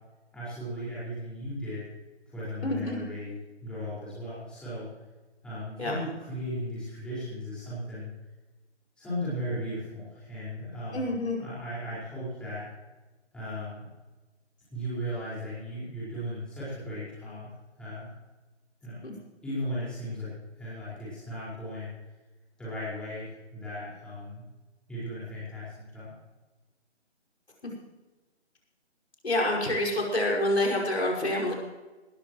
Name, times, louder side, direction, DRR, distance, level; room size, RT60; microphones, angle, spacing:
voice 1, 0.3-1.9 2.3-4.9 5.4-8.1 9.0-11.1 11.4-12.7 13.3-13.8 14.7-17.5 17.8-18.1 18.8-19.0 19.4-20.3 20.6-21.9 22.6-24.4 24.9-26.1, equal, 5° left, -11 dB, 5.0 m, -36 dB
voice 2, 2.6-3.0 5.8-5.9 10.9-11.4 19.0-19.1 29.2-31.5, left 1 dB, 65° left, -2 dB, 5.6 m, -27 dB
19.5 x 14.5 x 3.1 m, 1.2 s
figure-of-eight pair, 150°, 35 cm